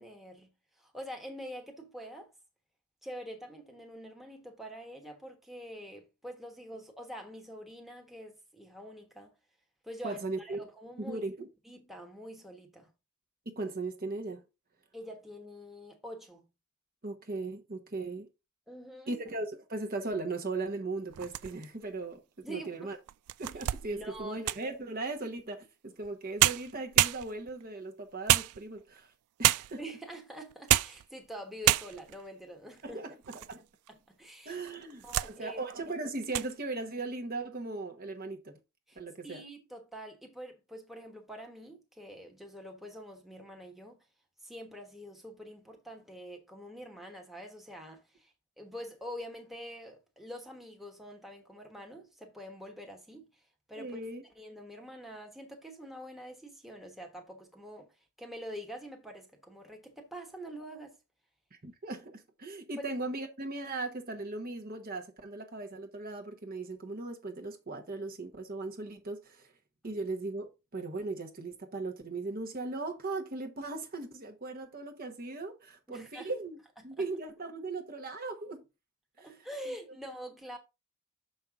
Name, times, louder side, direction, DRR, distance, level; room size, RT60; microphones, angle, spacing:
voice 1, 0.0-2.3 3.0-9.3 9.8-11.2 11.6-12.9 14.9-16.4 18.7-19.2 22.4-22.9 23.9-24.4 29.8-33.0 33.9-34.6 35.0-35.6 38.9-39.0 39.2-44.0 44.4-53.4 53.7-54.0 54.3-57.9 58.2-61.0 62.8-62.9 75.9-76.3 77.0-77.1 79.2-80.6, equal, ahead, 1.2 m, -45 dB
voice 2, 10.0-10.6 11.0-11.5 13.4-14.4 17.0-18.3 19.1-23.0 23.4-29.1 29.4-29.8 32.8-33.6 34.4-38.6 38.9-39.4 53.8-54.2 61.5-69.5 69.8-76.6 76.8-78.6 79.2-79.4, right 3 dB, 40° right, 1.1 m, -38 dB
sound 1, 21.1-21.8 22.4-22.5 23.1-24.8 26.0-26.1 26.4-27.6 28.3-29.0 29.4-29.9 30.5-31.1 31.3-31.4 31.6-32.2 32.8-33.6 33.9-34.0 34.7-35.4 35.7-35.9 36.2-36.5, right 15 dB, 85° right, 0.3 m, -28 dB
6.8 x 5.5 x 3.6 m
head